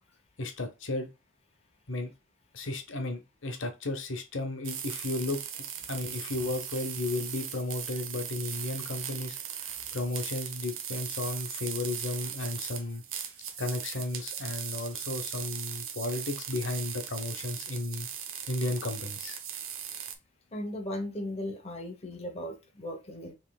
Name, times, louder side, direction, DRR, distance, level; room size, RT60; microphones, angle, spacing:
voice 1, 0.4-1.1 1.9-2.1 2.5-5.4 5.9-9.4 9.9-13.0 13.6-18.1 18.5-19.4, left 2 dB, 70° left, 1.0 m, -34 dB
sound 1, 4.6-20.2, right 8 dB, 85° right, 0.8 m, -38 dB
voice 2, 20.5-23.3, left 1 dB, 30° left, 0.9 m, -37 dB
5.4 x 3.2 x 2.3 m
head